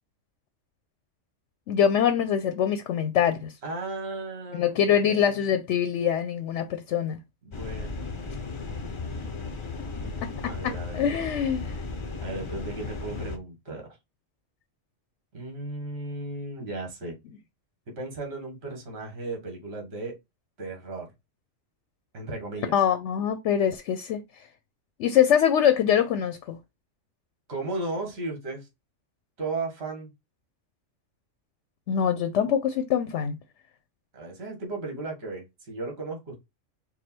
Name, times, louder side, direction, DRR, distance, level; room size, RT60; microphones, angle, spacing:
voice 1, 1.7-3.5 4.5-7.2 10.2-11.7 22.7-24.2 25.0-26.6 31.9-33.4, left 9 dB, 70° left, 0.9 m, -24 dB
voice 2, 3.6-5.6 7.5-8.1 9.9-11.0 12.2-13.9 15.3-17.2 18.0-20.2 20.6-21.1 22.1-22.7 27.5-28.7 29.4-30.1 34.1-36.4, right 2 dB, 55° right, 1.7 m, -35 dB
sound 1, 7.5-13.4, left 4 dB, 35° left, 0.5 m, -35 dB
4.8 x 2.2 x 4.3 m
omnidirectional pair, 1.3 m